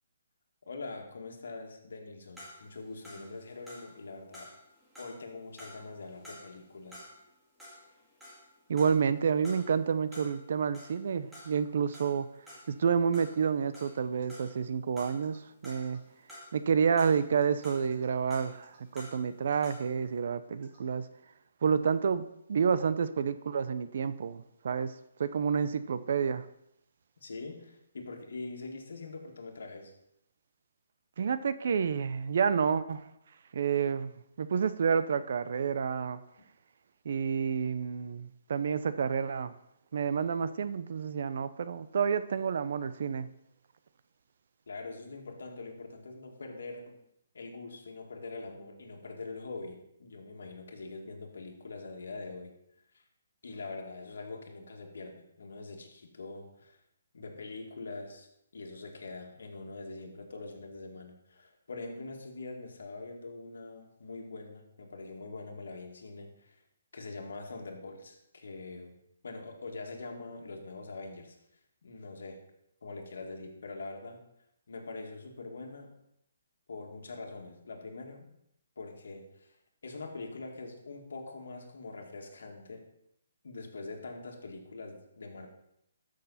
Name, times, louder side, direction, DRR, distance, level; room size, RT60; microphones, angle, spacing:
voice 1, 0.7-4.5 5.0-7.1 27.2-29.9 44.7-47.0 47.3-52.5 52.9-53.0 53.4-56.8 57.1-58.3 58.5-66.6 66.9-69.0 69.2-71.4 71.8-72.4 72.8-74.2 74.7-76.0 76.7-78.3 78.8-79.6 79.8-82.9 83.4-85.5, left 3 dB, 75° left, 2 dB, 2.1 m, -43 dB
sound 1, 2.4-7.3 7.6-14.7 15.0-16.7 17.0-20.0, left 1 dB, 5° right, 1.8 m, -51 dB
voice 2, 8.7-12.3 12.7-16.0 16.5-21.1 21.6-24.9 25.2-26.5 31.2-33.1 33.5-34.1 34.4-36.2 37.0-39.5 39.9-43.3, right 6 dB, 50° right, 13 dB, 0.6 m, -29 dB
sound 2, 14.2-14.3 15.2-15.4 15.8-16.0 17.0-17.5 17.9-18.0 18.6-19.1 19.5-19.7 20.6-20.8, right 3 dB, 30° right, 3.6 m, -61 dB
13.0 x 6.5 x 4.2 m, 0.78 s
hypercardioid pair, 170°, 0 cm